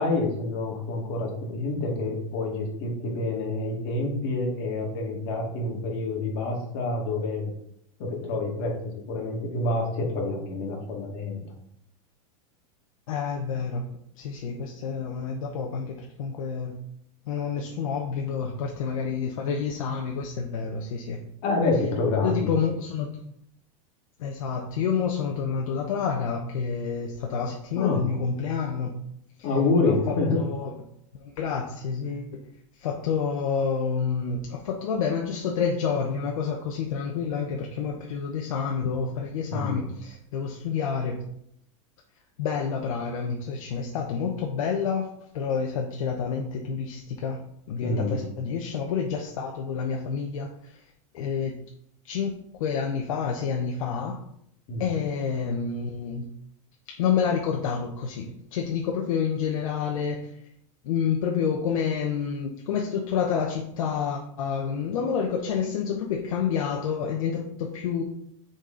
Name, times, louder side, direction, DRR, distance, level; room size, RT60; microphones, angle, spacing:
voice 1, 0.0-7.5 8.0-8.8 9.1-11.4 21.4-22.5 27.8-28.0 29.4-30.4 39.5-39.9 47.8-48.2 54.7-54.9, left 2 dB, 55° left, -1 dB, 2.1 m, -27 dB
voice 2, 13.1-13.8 14.2-16.8 17.3-21.2 22.2-23.2 24.2-29.0 29.4-29.5 29.8-30.7 31.2-32.5 32.8-41.2 42.4-47.4 47.7-50.8 51.1-51.5 52.0-54.2 54.8-56.2 56.9-60.3 60.8-68.0, left 6 dB, 85° left, 2 dB, 0.8 m, -28 dB
6.4 x 4.2 x 3.8 m, 0.73 s
supercardioid pair, 140°, 17 cm